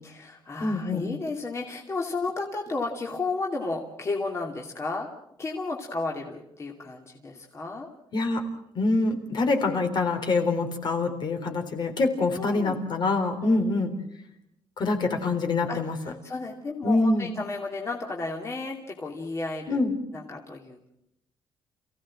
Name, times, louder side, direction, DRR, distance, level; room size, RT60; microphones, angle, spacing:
voice 1, 0.0-5.1 5.4-7.9 12.3-12.8 13.4-13.7 15.7-19.8 20.1-20.9, left 3 dB, 30° left, 0 dB, 2.8 m, -33 dB
voice 2, 0.6-1.1 8.1-8.4 8.8-13.9 14.8-16.0 16.8-17.3 19.7-20.0, left 3 dB, 50° left, 5 dB, 3.7 m, -25 dB
28.5 x 16.5 x 7.6 m, 0.80 s
cardioid pair, 140°, 10 cm